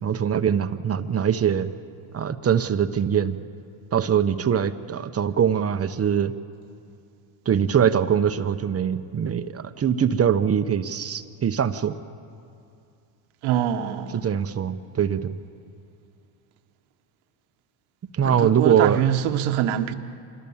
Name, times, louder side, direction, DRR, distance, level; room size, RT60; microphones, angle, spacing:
voice 1, 0.0-1.7 2.1-3.4 3.9-6.3 7.5-12.0 14.1-15.3 18.1-19.0, right 8 dB, 30° right, 0.9 m, -22 dB
voice 2, 13.4-14.2 18.2-19.9, right 11 dB, 75° right, 1.4 m, -24 dB
26.0 x 21.0 x 7.2 m
supercardioid pair, 105°, 49 cm